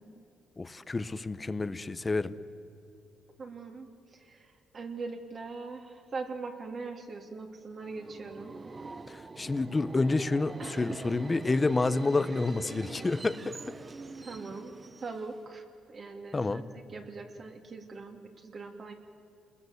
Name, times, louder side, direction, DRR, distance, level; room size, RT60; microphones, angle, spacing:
voice 1, 0.6-2.3 9.1-13.7 16.3-16.7, left 3 dB, 25° left, 13 dB, 1.0 m, -29 dB
voice 2, 3.4-8.5 10.6-11.0 14.2-14.7 15.0-18.9, right 4 dB, 45° right, 3 dB, 3.0 m, -41 dB
Subway metro underground, 7.8-15.5, right 3 dB, 30° right, 1.0 m, -45 dB
29.0 x 20.5 x 8.1 m, 2.7 s
cardioid pair, 90°, 0 cm